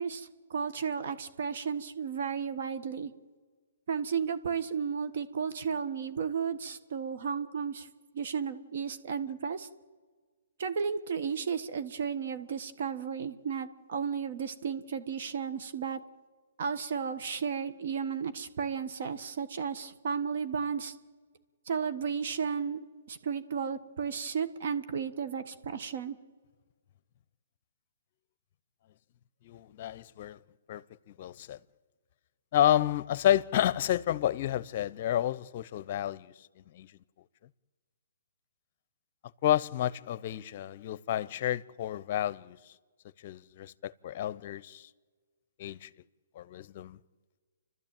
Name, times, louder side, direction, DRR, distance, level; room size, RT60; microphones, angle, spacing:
voice 1, 0.0-3.1 3.9-7.9 8.1-9.7 10.6-16.0 16.6-20.9 21.7-22.8 23.1-26.2, right 6 dB, 55° right, 1.5 m, -33 dB
voice 2, 29.4-30.4 30.7-31.6 32.5-36.3 36.7-36.9 39.4-42.6 43.2-44.9 45.6-45.9 46.4-47.0, left 11 dB, 45° left, 0.7 m, -30 dB
29.5 x 12.5 x 9.0 m
hypercardioid pair, 145°, 0 cm